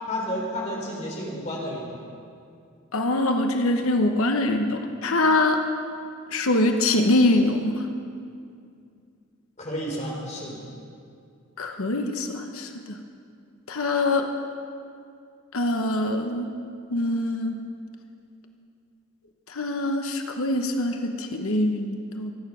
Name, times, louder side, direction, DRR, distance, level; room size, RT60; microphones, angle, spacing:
voice 1, 0.1-2.0 9.6-10.6, equal, 30° left, -2 dB, 3.7 m, -31 dB
voice 2, 2.9-5.6 6.3-7.9 11.6-12.7 13.7-14.3 15.5-16.5 16.9-17.6 19.5-22.3, left 2 dB, 80° left, 5 dB, 1.0 m, -24 dB
23.5 x 9.2 x 6.2 m, 2.4 s
head